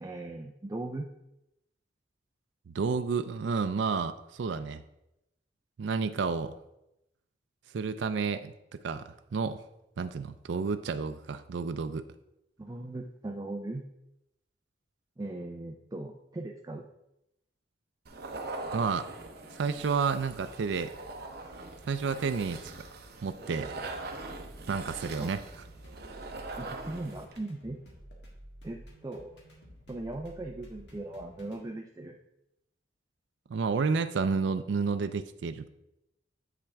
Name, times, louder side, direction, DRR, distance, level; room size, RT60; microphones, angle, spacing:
voice 1, 0.0-1.1 12.6-13.8 15.2-16.9 25.2-25.3 26.6-27.8 28.6-29.3 29.9-32.2, right 2 dB, 20° right, 2 dB, 0.4 m, -39 dB
voice 2, 2.7-4.8 5.8-6.5 7.7-9.6 10.0-12.0 18.7-19.0 19.5-20.9 21.9-22.7 23.2-23.8 24.7-25.4 33.5-35.7, right 5 dB, 85° right, 10 dB, 0.4 m, -30 dB
sound 1, 18.0-27.4, right 2 dB, 60° right, 0.9 m, -42 dB
sound 2, 23.6-31.6, equal, 70° left, 1.7 m, -51 dB
8.2 x 5.8 x 3.5 m, 0.87 s
head